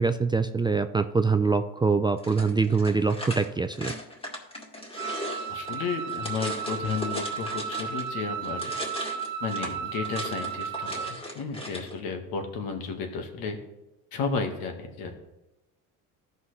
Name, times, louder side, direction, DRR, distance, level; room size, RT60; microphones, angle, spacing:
voice 1, 0.0-3.9, right 4 dB, 15° right, 8 dB, 0.4 m, -24 dB
sound 1, 2.2-8.1 8.4-11.9, left 1 dB, 15° left, 2.1 m, -38 dB
Wind instrument woodwind instrument, 5.0-11.2, right 8 dB, 65° right, 1.3 m, -34 dB
voice 2, 5.5-8.7 9.4-13.6 14.1-15.1, left 5 dB, 70° left, 4 dB, 1.7 m, -33 dB
14.0 x 5.5 x 3.2 m, 0.96 s
supercardioid pair, 90°, 36 cm